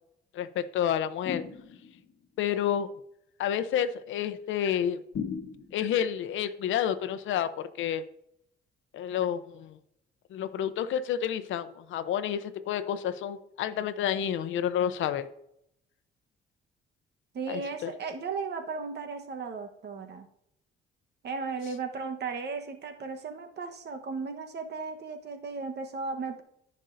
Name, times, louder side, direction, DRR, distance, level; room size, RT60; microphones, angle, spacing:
voice 1, 0.3-1.4 2.4-2.9 3.4-5.0 5.7-8.0 8.9-9.7 10.3-15.3 17.5-17.9, left 9 dB, 75° left, 12 dB, 0.7 m, -29 dB
sound 1, 1.2-2.1 5.1-6.0, left 6 dB, 60° left, 1.3 m, -37 dB
voice 2, 17.3-20.3 21.2-26.4, right 4 dB, 55° right, 6 dB, 1.2 m, -36 dB
14.0 x 5.4 x 2.6 m, 0.75 s
cardioid pair, 90°, 20 cm